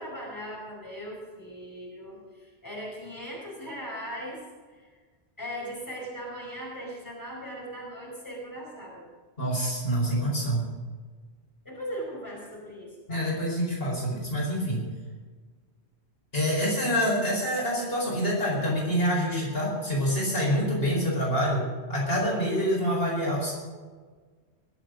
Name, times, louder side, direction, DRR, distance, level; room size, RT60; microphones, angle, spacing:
voice 1, 0.0-4.4 4.7-4.9 5.4-9.1 11.6-13.3, equal, 15° left, -4 dB, 5.3 m, -39 dB
voice 2, 9.4-10.6 13.1-14.8 16.3-23.5, equal, 60° left, -4 dB, 5.1 m, -26 dB
21.5 x 7.9 x 6.4 m, 1.5 s
omnidirectional pair, 1.1 m